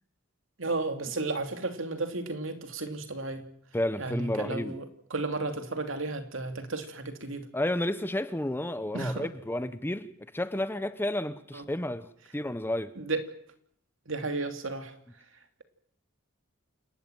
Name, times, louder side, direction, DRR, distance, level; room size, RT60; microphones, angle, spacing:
voice 1, 0.6-3.4 4.0-4.8 5.1-7.5 8.9-9.3 11.5-11.6 13.0-13.2 14.1-14.9, right 3 dB, 70° right, 3.0 m, -33 dB
voice 2, 3.7-4.7 7.5-10.1 10.3-12.1 12.3-12.9, left 1 dB, 10° left, 0.8 m, -31 dB
28.5 x 12.5 x 9.2 m
head